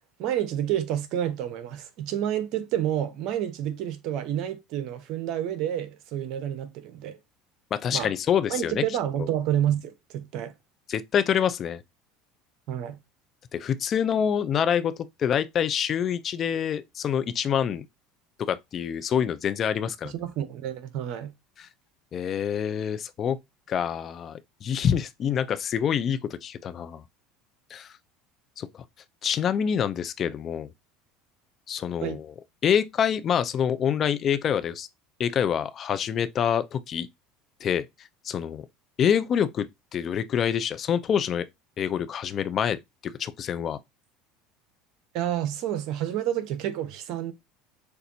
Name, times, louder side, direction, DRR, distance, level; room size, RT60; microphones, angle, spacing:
voice 1, 0.2-7.2 7.9-8.1 8.5-10.5 12.7-13.0 20.0-21.3 32.0-32.2 45.1-47.3, right 11 dB, 60° right, 1.0 m, -29 dB
voice 2, 7.7-8.8 9.2-9.3 10.9-11.8 13.5-14.9 15.2-17.8 18.4-20.1 21.6-21.7 22.1-23.4 23.7-27.0 27.7-27.9 28.6-28.8 29.2-30.7 31.7-32.3 32.6-34.9 35.2-37.1 37.6-37.8 38.2-38.6 39.0-39.7 39.9-41.4 41.8-42.8 43.0-43.8, left 8 dB, 40° left, 0.6 m, -26 dB
6.6 x 2.7 x 2.8 m
supercardioid pair, 95°, 0 cm